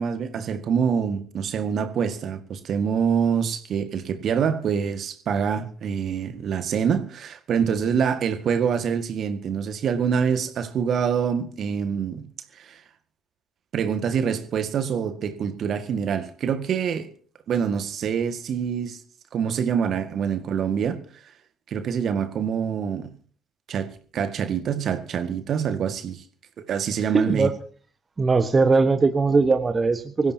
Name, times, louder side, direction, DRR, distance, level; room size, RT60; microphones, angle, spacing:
voice 1, 0.0-12.3 12.6-12.8 13.7-17.1 17.5-19.0 19.3-21.0 21.7-23.1 23.7-23.9 24.1-26.2 26.6-27.5, right 7 dB, 50° right, 1.8 m, -25 dB
voice 2, 26.9-27.6 28.2-30.3, right 4 dB, 30° right, 1.4 m, -20 dB
25.0 x 15.5 x 2.9 m
figure-of-eight pair, 50°, 0 cm